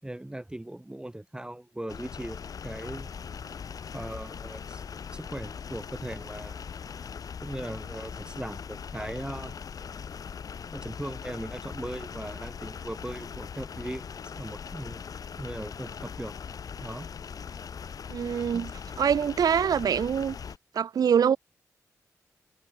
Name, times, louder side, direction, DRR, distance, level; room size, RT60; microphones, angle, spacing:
voice 1, 0.0-3.2 3.9-4.8 5.1-6.7 7.4-9.6 10.7-16.3 16.8-17.1 18.5-18.7, right 1 dB, 15° right, 5.4 m, -39 dB
sound 1, 1.9-20.6, left 6 dB, 70° left, 3.0 m, -40 dB
voice 2, 18.1-18.7 19.0-20.3 20.7-21.4, right 8 dB, 85° right, 3.3 m, -24 dB
cardioid pair, 60°, 6 cm